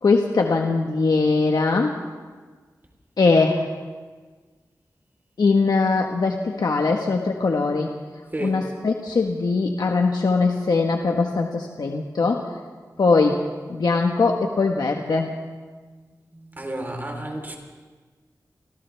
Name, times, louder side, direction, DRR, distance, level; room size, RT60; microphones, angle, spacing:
voice 1, 0.0-2.0 3.2-3.7 5.4-7.9 8.4-12.5 13.0-13.4 13.7-15.4, left 4 dB, 80° left, 2 dB, 1.4 m, -21 dB
voice 2, 16.3-17.6, right 1 dB, 30° right, 2 dB, 3.9 m, -32 dB
29.0 x 26.0 x 3.5 m, 1.4 s
wide cardioid pair, 110°, 7 cm